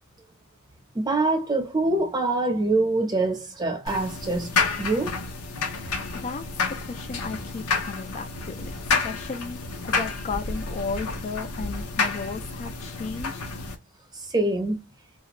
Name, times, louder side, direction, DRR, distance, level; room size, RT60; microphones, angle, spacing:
voice 1, 0.9-4.5 4.8-5.1 14.3-14.8, right 2 dB, 20° right, 0.7 m, -24 dB
sound 1, 3.9-13.7, left 4 dB, 90° left, 0.7 m, -30 dB
voice 2, 6.2-8.7 9.0-13.4, left 4 dB, 35° left, 0.3 m, -35 dB
2.4 x 2.2 x 3.0 m
head